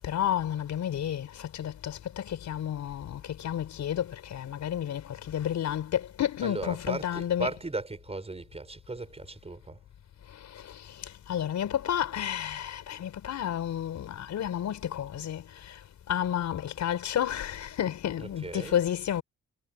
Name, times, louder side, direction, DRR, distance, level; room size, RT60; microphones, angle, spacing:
voice 1, 0.0-7.6 10.3-15.8 16.1-19.2, left 10 dB, 70° left, 5.0 m, -31 dB
voice 2, 6.4-9.8 18.2-18.8, right 3 dB, 20° right, 5.8 m, -37 dB
cardioid pair, 90°, 30 cm